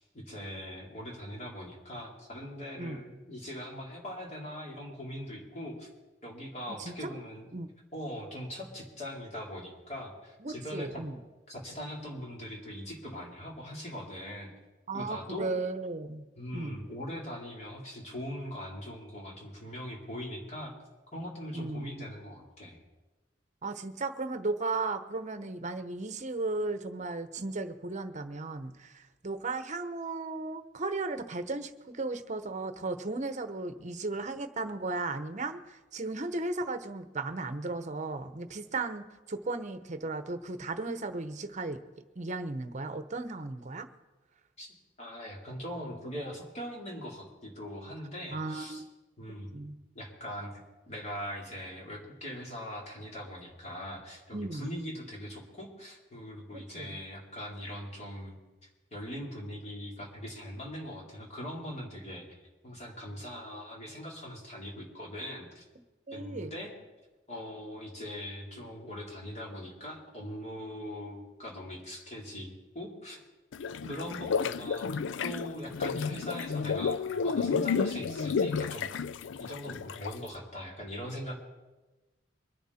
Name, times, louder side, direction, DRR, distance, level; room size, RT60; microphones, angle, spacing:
voice 1, 0.0-5.9 6.2-7.5 7.9-11.0 11.5-14.5 14.9-15.5 16.3-20.7 21.1-22.8 44.6-44.7 45.0-48.8 49.2-49.5 49.9-50.6 50.9-58.4 58.9-62.4 62.6-65.6 66.1-66.7 67.3-73.2 73.9-74.9 75.2-78.9 79.4-81.3, equal, 40° left, -2 dB, 4.0 m, -41 dB
voice 2, 6.8-7.1 7.5-7.7 10.4-11.2 14.9-16.2 16.5-16.8 21.5-22.1 23.6-41.8 42.1-43.9 48.3-48.9 49.5-49.8 54.3-54.7 56.5-57.0 66.1-66.6 73.8-74.0, right 3 dB, 40° right, 9 dB, 1.0 m, -35 dB
sound 1, 73.5-80.3, left 6 dB, 85° left, 0.4 m, -31 dB
23.5 x 10.0 x 4.3 m, 1.1 s
head